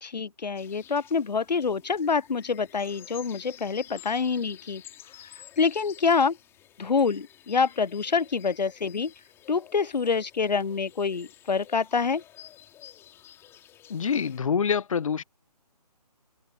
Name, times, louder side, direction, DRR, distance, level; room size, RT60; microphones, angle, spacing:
voice 1, 0.0-4.8 5.6-6.4 6.8-9.1 9.5-12.2, left 5 dB, 85° left, 0.6 m, -26 dB
sound 1, 0.5-14.4, left 12 dB, 10° left, 5.4 m, -51 dB
voice 2, 13.9-15.2, left 6 dB, 55° left, 0.9 m, -26 dB
figure-of-eight pair, 150°, 21 cm